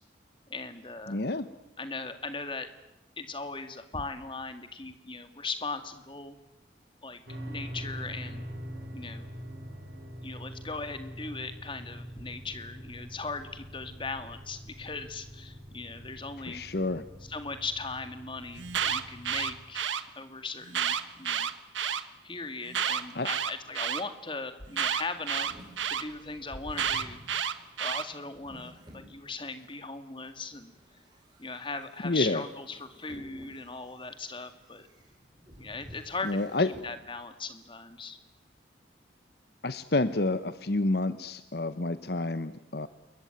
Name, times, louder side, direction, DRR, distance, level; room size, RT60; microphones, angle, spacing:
voice 1, 0.5-1.2 1.8-2.7 3.2-6.4 7.0-7.2 7.5-8.4 8.9-9.3 10.2-16.6 17.2-19.9 20.2-21.5 22.2-25.5 25.9-27.2 27.8-30.7 31.4-34.9 35.6-38.2, left 3 dB, 25° left, 9 dB, 2.1 m, -39 dB
voice 2, 1.1-1.5 16.5-17.0 23.1-23.3 32.0-32.4 36.2-36.7 39.6-42.9, left 2 dB, 55° left, 13 dB, 0.9 m, -29 dB
sound 1, 7.3-19.6, equal, 55° right, 7.9 m, -44 dB
Alarm, 18.6-20.0 20.7-22.0 22.7-24.0 24.8-26.0 26.8-28.0, right 8 dB, 90° right, 1.5 m, -30 dB
sound 2, 24.9-29.7 30.3-36.9, equal, 25° right, 5.2 m, -52 dB
28.0 x 22.0 x 9.3 m, 0.95 s
head